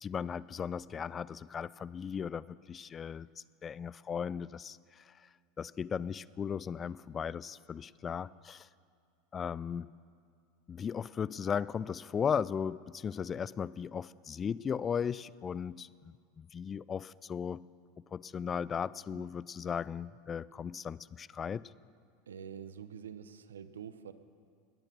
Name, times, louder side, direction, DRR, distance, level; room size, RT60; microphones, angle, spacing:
voice 1, 0.0-3.3 3.6-5.1 5.6-8.7 9.3-9.9 10.7-17.6 18.1-21.7, left 7 dB, 30° left, 20 dB, 0.3 m, -36 dB
voice 2, 22.3-24.1, right 8 dB, 85° right, 13 dB, 0.7 m, -46 dB
18.0 x 9.2 x 6.1 m, 2.3 s
hypercardioid pair, 90°, 0 cm